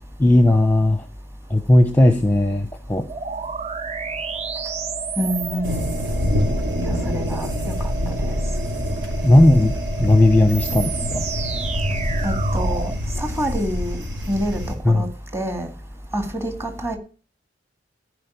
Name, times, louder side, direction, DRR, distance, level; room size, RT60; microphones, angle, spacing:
voice 1, 0.2-1.0 1.5-3.0 9.2-11.2 14.8-15.0, left 1 dB, 10° left, 7 dB, 0.9 m, -16 dB
sound 1, 3.1-13.0, right 5 dB, 35° right, 0.7 m, -31 dB
voice 2, 5.2-5.8 6.9-7.7 8.1-8.4 12.2-12.9 13.2-14.0 14.3-14.6 14.9-15.1 15.3-15.7 16.1-17.0, equal, 15° right, 5 dB, 2.3 m, -26 dB
sound 2, 5.6-14.7, left 1 dB, 75° right, 3.5 m, -26 dB
14.0 x 5.1 x 9.4 m, 0.37 s
head